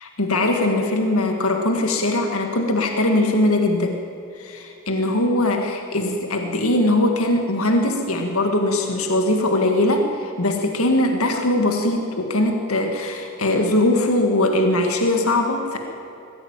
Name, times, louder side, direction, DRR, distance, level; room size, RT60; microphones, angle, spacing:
voice 1, 0.0-4.0 4.4-15.8, left 1 dB, 75° left, 4 dB, 1.9 m, -21 dB
21.0 x 15.0 x 8.9 m, 2.8 s
head